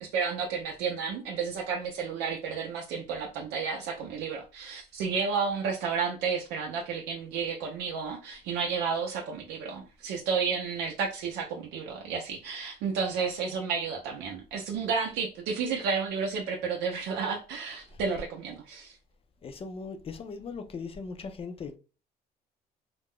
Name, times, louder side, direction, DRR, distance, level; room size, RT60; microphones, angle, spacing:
voice 1, 0.0-18.9, right 5 dB, 90° right, 0.5 m, -31 dB
voice 2, 19.4-21.8, left 4 dB, 35° left, 0.5 m, -39 dB
2.4 x 2.1 x 3.5 m
cardioid pair, 110°, 17 cm